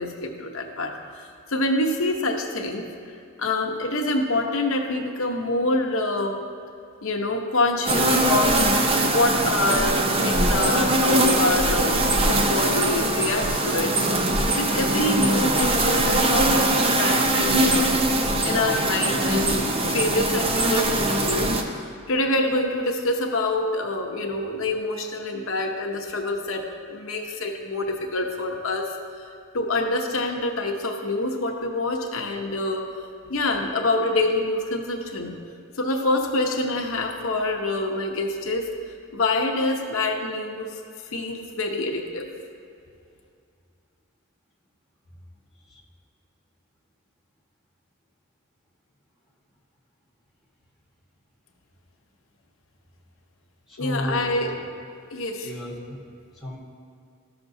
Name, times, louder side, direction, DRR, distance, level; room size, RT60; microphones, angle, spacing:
voice 1, 0.0-2.9 3.4-6.4 7.0-8.6 9.0-13.9 14.2-17.9 18.4-28.9 29.5-32.9 33.3-35.3 35.8-38.7 39.1-40.8 41.1-42.3 53.8-54.5 55.1-55.5, left 2 dB, 80° left, 2 dB, 0.8 m, -26 dB
sound 1, 7.9-21.6, right 1 dB, 25° right, 0.6 m, -21 dB
voice 2, 53.7-54.6 55.4-56.0 56.4-56.6, equal, ahead, -6 dB, 1.4 m, -33 dB
13.5 x 6.0 x 2.7 m, 2.3 s
head